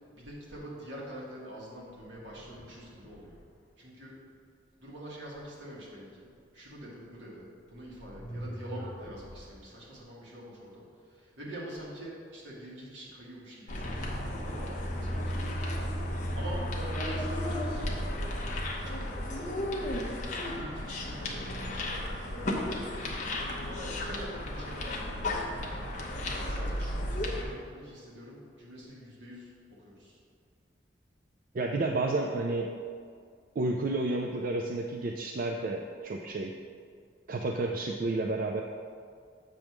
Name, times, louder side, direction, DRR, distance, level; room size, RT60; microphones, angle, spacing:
voice 1, 0.1-3.4 3.8-4.2 4.8-6.3 6.5-15.8 16.4-18.3 18.8-19.5 20.5-25.2 26.2-30.2, equal, 75° right, -5 dB, 1.8 m, -45 dB
sound 1, 1.9-3.6 6.7-6.8 7.7-9.6, right 1 dB, 10° left, 1.1 m, -45 dB
sound 2, 13.7-27.4, left 1 dB, 40° left, 0.9 m, -34 dB
voice 2, 31.5-32.7 33.6-36.5 37.3-38.6, right 2 dB, 50° right, 2 dB, 0.3 m, -31 dB
7.5 x 3.5 x 6.0 m, 2.2 s
head